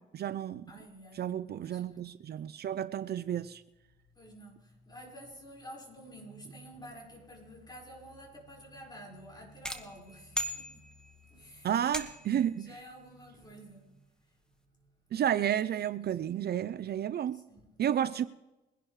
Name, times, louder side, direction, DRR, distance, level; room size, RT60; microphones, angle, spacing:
voice 1, 0.0-0.6 1.1-3.6 11.6-12.7 15.1-17.4 17.8-18.3, right 10 dB, 55° right, 0.5 m, -31 dB
voice 2, 0.7-2.1 4.1-12.2 12.6-14.1 16.0-16.1 17.3-18.1, equal, 20° left, 5.2 m, -50 dB
sound 1, 9.6-11.3 11.9-12.5, equal, 5° left, 1.5 m, -38 dB
23.0 x 11.0 x 3.2 m
cardioid pair, 90°, 20 cm